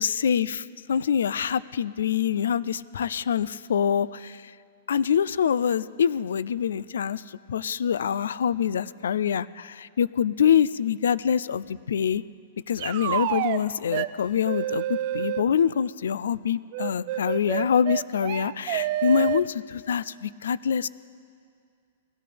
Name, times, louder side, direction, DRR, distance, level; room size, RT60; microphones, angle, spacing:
voice 1, 0.0-4.5 4.9-12.2 12.7-20.9, left 8 dB, 85° left, 19 dB, 0.4 m, -25 dB
sound 1, 12.8-13.6 13.9-14.1 14.5-15.4 16.7-19.4, right 14 dB, 40° right, 0.4 m, -28 dB
20.5 x 17.0 x 3.4 m, 2.3 s
hypercardioid pair, 165°, 0 cm